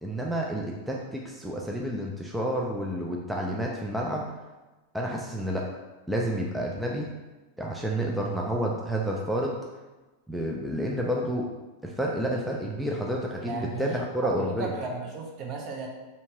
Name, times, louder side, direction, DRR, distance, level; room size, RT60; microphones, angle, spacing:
voice 1, 0.0-4.3 4.9-5.7 6.1-7.1 7.6-9.6 10.3-11.5 11.8-14.7, right 1 dB, 5° right, -2 dB, 0.4 m, -30 dB
voice 2, 13.4-15.9, right 4 dB, 45° right, 0 dB, 0.8 m, -35 dB
3.4 x 2.8 x 2.9 m, 1.2 s
hypercardioid pair, 100°, 0 cm